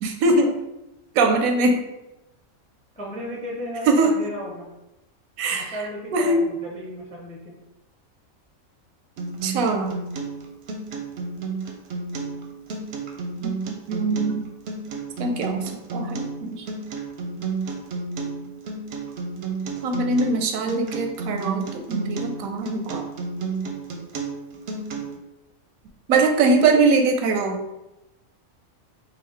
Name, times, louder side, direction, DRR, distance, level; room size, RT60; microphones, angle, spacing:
voice 1, 0.0-0.5 1.1-1.8 3.8-4.1 5.4-6.4 9.4-9.9 13.4-14.5 15.2-16.7 19.8-23.0 26.1-27.6, right 3 dB, 85° right, 4 dB, 1.0 m, -22 dB
voice 2, 2.9-4.7 5.5-7.6, equal, 10° left, -3 dB, 0.4 m, -34 dB
Acoustic guitar, 9.2-25.2, right 4 dB, 60° right, 0.7 m, -31 dB
3.8 x 2.5 x 3.3 m, 0.95 s
omnidirectional pair, 1.4 m